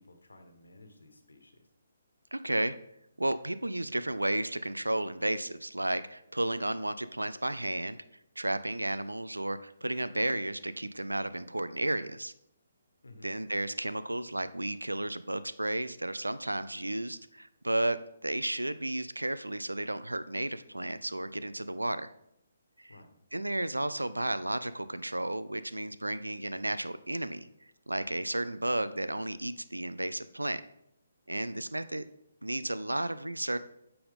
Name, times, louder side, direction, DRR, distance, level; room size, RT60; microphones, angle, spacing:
voice 1, 0.0-1.7 13.0-13.3 22.9-23.1, left 2 dB, 75° left, 6 dB, 1.3 m, -55 dB
voice 2, 2.3-2.7 3.2-8.0 8.4-12.3 13.2-22.1 22.8-23.0 23.3-27.5 27.9-30.6 31.3-32.0 32.4-33.6, right 1 dB, 90° right, 13 dB, 0.4 m, -33 dB
9.0 x 6.8 x 3.7 m, 0.78 s
figure-of-eight pair, 140°, 0 cm